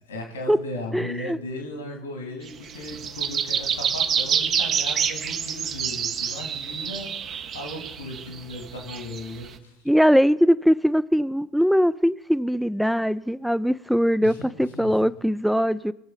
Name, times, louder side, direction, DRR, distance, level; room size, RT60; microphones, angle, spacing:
voice 1, 0.1-9.8 14.2-15.0, left 1 dB, 90° left, 2.5 m, -37 dB
voice 2, 0.9-1.4 9.9-15.9, equal, ahead, 0.3 m, -21 dB
sound 1, 2.5-9.5, right 7 dB, 45° right, 0.8 m, -27 dB
20.0 x 7.1 x 4.0 m
hypercardioid pair, 70°, 0 cm